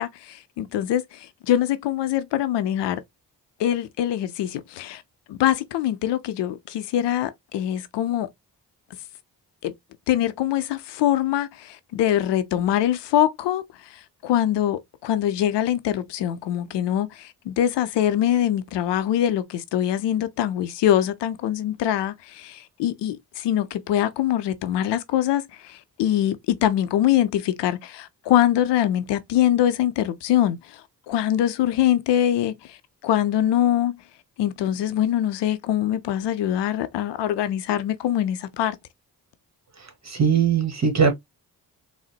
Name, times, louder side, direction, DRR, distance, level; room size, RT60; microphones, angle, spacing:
voice 1, 0.0-3.0 3.6-5.0 5.3-8.3 9.6-9.7 10.1-30.8 31.1-32.8 33.0-33.9 34.4-38.8, left 11 dB, 90° left, 0.6 m, -23 dB
voice 2, 40.1-41.1, right 6 dB, 40° right, 1.4 m, -20 dB
3.9 x 2.1 x 2.3 m
cardioid pair, 55°, 41 cm